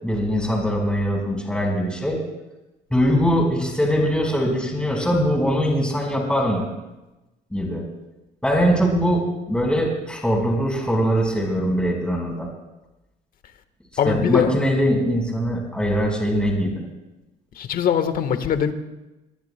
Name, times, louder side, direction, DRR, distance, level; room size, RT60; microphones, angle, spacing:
voice 1, 0.0-2.2 2.9-6.7 7.5-7.9 8.4-12.5 14.0-16.8, equal, 5° left, 0 dB, 4.6 m, -22 dB
voice 2, 14.0-14.5 17.5-18.7, left 8 dB, 55° left, 10 dB, 1.3 m, -21 dB
25.5 x 20.0 x 2.2 m, 1.0 s
cardioid pair, 110°, 17 cm